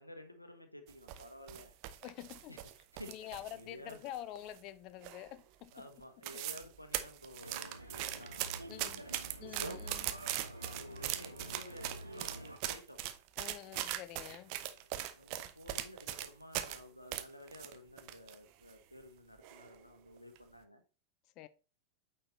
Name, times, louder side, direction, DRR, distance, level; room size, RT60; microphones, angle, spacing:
voice 1, 0.0-1.8 2.5-4.0 5.7-9.3 10.4-13.0 14.5-20.8, left 1 dB, 85° left, 1.1 m, -53 dB
sound 1, 0.9-3.6 3.9-4.7 5.0-5.4 5.7-5.8 6.0-6.7 6.9-16.8 17.1-18.4 18.7-18.8 19.4-19.8 20.2-20.4, right 13 dB, 45° right, 0.8 m, -40 dB
voice 2, 2.0-2.5 3.1-5.9 8.7-9.0 9.4-10.1 13.4-14.5 21.4-21.5, left 13 dB, 40° left, 0.5 m, -47 dB
sound 2, 7.4-12.6, right 1 dB, 85° right, 1.0 m, -47 dB
8.7 x 4.6 x 3.1 m
figure-of-eight pair, 90°, 0 cm